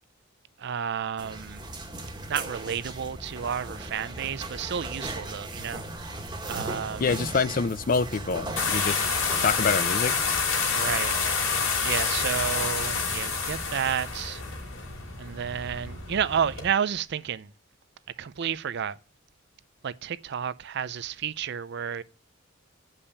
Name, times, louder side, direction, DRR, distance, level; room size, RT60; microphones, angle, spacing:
voice 1, 0.6-1.6 2.3-5.8 6.5-7.2 10.7-11.1 11.8-14.4 15.2-17.5 18.2-19.0 19.8-22.0, right 8 dB, 55° right, 0.4 m, -31 dB
sound 1, 1.2-9.7, right 2 dB, 20° right, 1.5 m, -37 dB
voice 2, 7.0-9.1 9.4-10.1, left 5 dB, 45° left, 0.4 m, -26 dB
sound 2, 8.6-16.7, left 5 dB, 75° left, 2.8 m, -28 dB
8.4 x 5.5 x 7.0 m
head